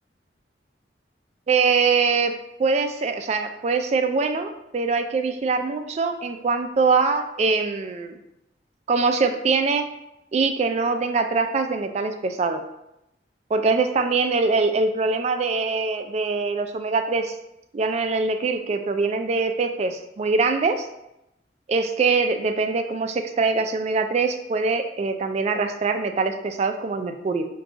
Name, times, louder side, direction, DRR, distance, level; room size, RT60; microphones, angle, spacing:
voice 1, 1.5-2.3 2.6-8.2 8.9-9.8 10.3-12.6 13.5-17.4 17.7-20.9 21.7-27.4, right 4 dB, 40° right, 7 dB, 0.3 m, -23 dB
4.9 x 2.3 x 3.6 m, 0.87 s
head